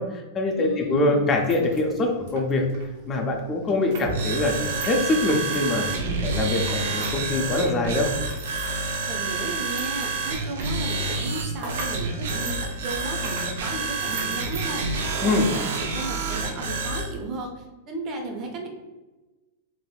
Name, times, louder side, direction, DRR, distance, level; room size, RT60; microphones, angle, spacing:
voice 1, 0.0-2.6 3.1-5.9 6.2-8.1 15.2-15.5, left 2 dB, 20° left, 2 dB, 0.4 m, -24 dB
voice 2, 0.6-1.3 9.1-18.7, right 2 dB, 30° right, 2 dB, 0.6 m, -34 dB
sound 1, 1.3-7.2 7.5-15.4 15.7-15.8 16.5-16.7, right 3 dB, 65° right, 0.9 m, -41 dB
sound 2, 4.0-17.1, right 3 dB, 80° right, 0.5 m, -28 dB
3.3 x 2.5 x 2.3 m, 1.1 s
supercardioid pair, 150°, 0 cm